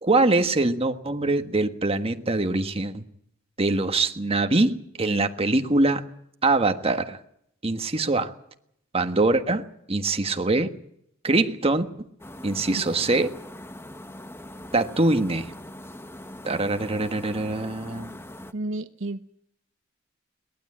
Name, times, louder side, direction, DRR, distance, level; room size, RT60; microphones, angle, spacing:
voice 1, 0.0-3.0 3.6-6.0 6.4-7.2 7.6-8.3 8.9-9.6 9.9-10.7 11.2-11.9 12.4-13.4 14.7-15.5 16.4-18.1, right 2 dB, 30° right, 7 dB, 1.5 m, -23 dB
sound 1, 12.2-18.5, left 1 dB, 10° left, 1.1 m, -42 dB
voice 2, 18.5-19.4, right 2 dB, 70° right, 11 dB, 0.9 m, -32 dB
22.5 x 19.0 x 8.8 m, 0.73 s
head